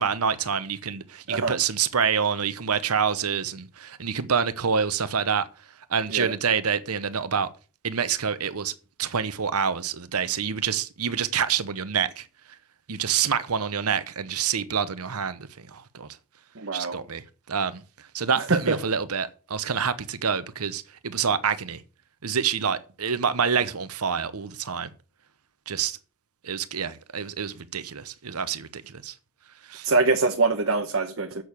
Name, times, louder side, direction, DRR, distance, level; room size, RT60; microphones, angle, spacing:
voice 1, 0.0-5.5 5.9-7.5 7.8-8.7 9.0-12.3 12.9-16.1 16.7-17.8 18.1-21.8 22.2-24.9 25.7-26.0 26.4-29.1 29.7-29.9, right 6 dB, 85° right, 0.9 m, -27 dB
voice 2, 16.6-17.0 18.3-18.8 29.8-31.4, right 3 dB, 60° right, 1.1 m, -24 dB
7.8 x 6.7 x 8.2 m
head